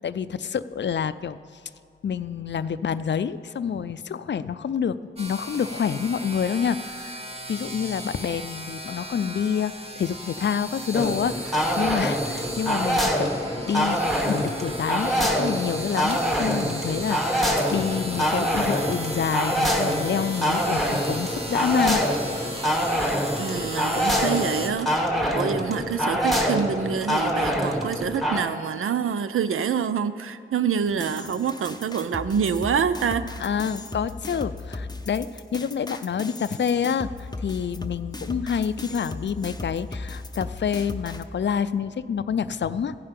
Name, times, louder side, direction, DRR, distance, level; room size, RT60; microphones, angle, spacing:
voice 1, 0.0-1.4 2.0-7.2 7.5-14.0 14.3-22.0 33.4-43.0, left 7 dB, 60° left, 14 dB, 0.4 m, -28 dB
sound 1, 5.2-24.7, right 1 dB, 30° right, 1.2 m, -36 dB
sound 2, 10.9-28.4, equal, ahead, 1.3 m, -25 dB
voice 2, 23.4-24.9 25.3-33.3, right 7 dB, 90° right, 12 dB, 0.4 m, -26 dB
sound 3, 30.9-41.2, left 2 dB, 20° left, 0.7 m, -37 dB
15.5 x 5.4 x 5.2 m, 2.5 s
cardioid pair, 40°, 21 cm